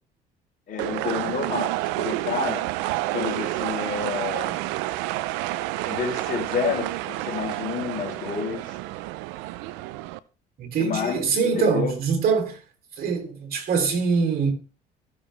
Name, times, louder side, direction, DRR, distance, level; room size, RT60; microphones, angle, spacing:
voice 1, 0.7-2.6 3.1-4.8 5.9-8.8 10.8-11.9, left 7 dB, 55° left, 3.7 m, -30 dB
sound 1, 0.8-10.2, right 17 dB, 90° right, 0.6 m, -29 dB
voice 2, 10.6-12.6 13.0-14.5, right 5 dB, 60° right, 3.5 m, -23 dB
15.0 x 7.0 x 3.4 m
supercardioid pair, 80°, 18 cm